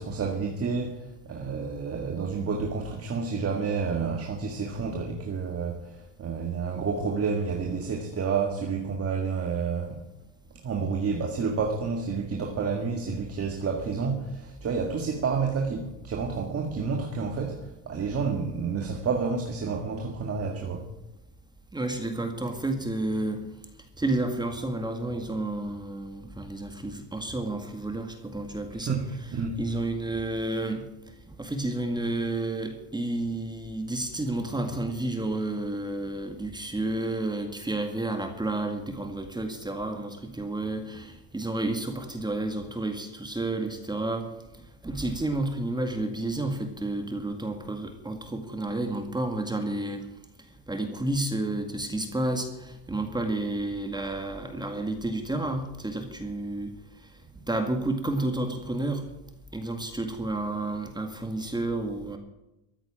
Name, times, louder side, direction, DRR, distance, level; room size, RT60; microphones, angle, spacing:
voice 1, 0.0-10.0 10.6-20.9 28.9-29.6, right 5 dB, 35° right, 3 dB, 2.1 m, -30 dB
voice 2, 21.7-23.4 24.0-29.0 29.6-30.8 31.3-44.3 44.8-50.1 50.7-56.7 57.5-59.1 59.5-62.2, right 2 dB, 10° right, 6 dB, 2.0 m, -31 dB
14.5 x 8.9 x 8.9 m, 0.94 s
cardioid pair, 120°, 40 cm